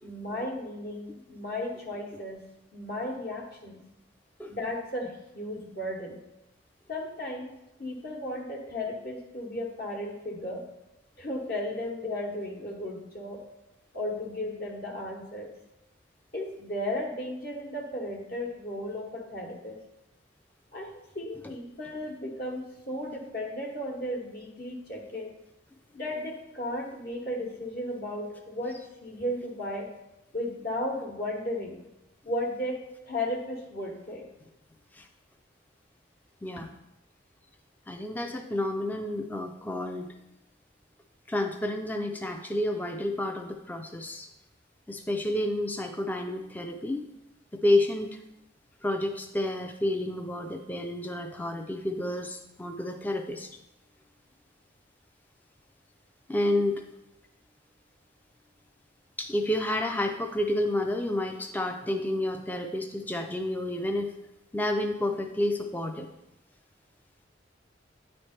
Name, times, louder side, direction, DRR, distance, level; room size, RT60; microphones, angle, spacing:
voice 1, 0.0-2.5 2.7-3.8 4.5-6.2 6.9-10.6 11.2-13.4 13.9-15.5 16.3-19.8 20.7-20.9 21.1-25.3 25.9-29.9 30.3-31.8 32.2-34.3, left 1 dB, 55° left, -1 dB, 1.0 m, -35 dB
voice 2, 37.9-40.1 41.3-44.3 44.9-47.0 47.5-48.2 48.8-53.5 56.3-56.8 59.2-64.1 64.5-66.1, left 1 dB, 10° left, 5 dB, 0.3 m, -30 dB
9.3 x 3.2 x 4.3 m, 0.90 s
head